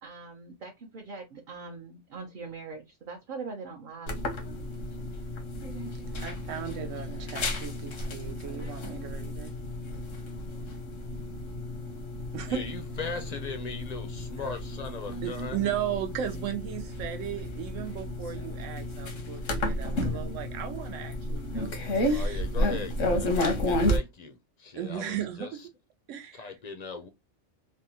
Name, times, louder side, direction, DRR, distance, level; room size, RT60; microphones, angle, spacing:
voice 1, 0.0-4.1, right 4 dB, 50° right, 0.7 m, -42 dB
sound 1, 4.1-24.0, left 1 dB, 85° left, 1.2 m, -32 dB
voice 2, 6.2-9.5 12.3-12.6 15.2-22.4 24.7-25.5 26.1-26.5, right 10 dB, 85° right, 1.0 m, -36 dB
voice 3, 12.5-15.6 22.1-25.5 26.3-27.1, left 4 dB, 55° left, 0.4 m, -38 dB
3.4 x 2.1 x 2.7 m
omnidirectional pair, 1.3 m